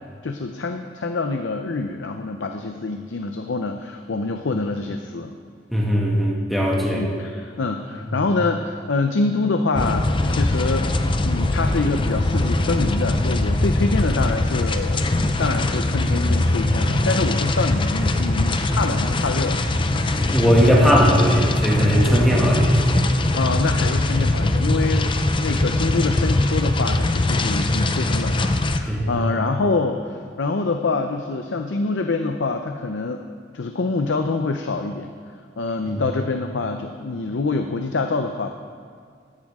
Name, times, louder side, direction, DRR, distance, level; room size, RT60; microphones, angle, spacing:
voice 1, 0.2-5.3 6.9-15.1 15.4-19.6 23.3-33.2 33.5-35.1 35.6-38.5, left 3 dB, 80° left, 5 dB, 0.6 m, -25 dB
voice 2, 5.7-7.0 16.6-16.9 20.2-23.2 28.9-29.2 35.8-36.0, equal, ahead, -4 dB, 2.1 m, -19 dB
sound 1, 9.8-28.8, left 2 dB, 25° left, 0.6 m, -21 dB
14.0 x 10.5 x 3.6 m, 2.1 s
head